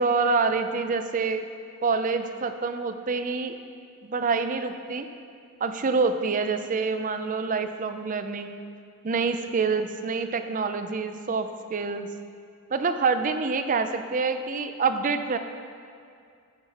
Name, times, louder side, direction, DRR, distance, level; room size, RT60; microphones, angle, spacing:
voice 1, 0.0-1.5 1.8-3.5 4.0-5.1 5.6-8.6 9.0-12.1 12.7-15.4, right 4 dB, 35° right, 9 dB, 0.5 m, -26 dB
14.5 x 5.6 x 4.2 m, 2.3 s
head